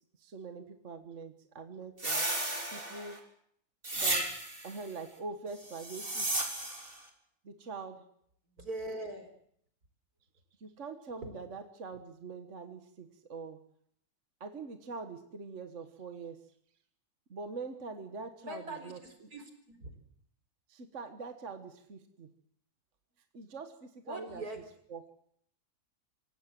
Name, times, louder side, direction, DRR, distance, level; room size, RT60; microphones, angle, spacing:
voice 1, 0.2-2.3 2.7-3.2 3.9-6.3 7.4-8.0 10.6-13.6 14.4-16.4 17.3-19.3 20.7-22.3 23.3-24.4 24.9-25.0, right 4 dB, 50° right, 6 dB, 1.8 m, -44 dB
sound 1, 2.0-3.2 3.8-4.7 5.7-6.9, right 2 dB, 35° right, 3.7 m, -33 dB
voice 2, 8.6-9.3 18.4-19.9 24.1-24.6, right 2 dB, 70° right, 7 dB, 4.5 m, -42 dB
26.0 x 17.0 x 7.7 m, 0.68 s
omnidirectional pair, 1.7 m